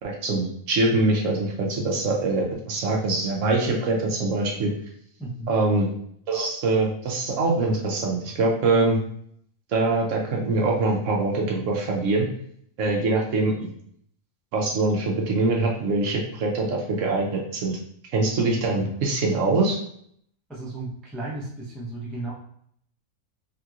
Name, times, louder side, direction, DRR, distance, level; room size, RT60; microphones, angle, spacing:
voice 1, 0.0-4.7 5.5-5.9 6.3-9.0 9.7-12.3 12.8-13.7 14.5-17.8 18.1-19.8, right 3 dB, 65° right, -1 dB, 0.9 m, -23 dB
voice 2, 5.2-5.5 20.5-22.3, right 2 dB, ahead, -5 dB, 0.3 m, -34 dB
3.3 x 2.8 x 2.4 m, 0.66 s
omnidirectional pair, 1.5 m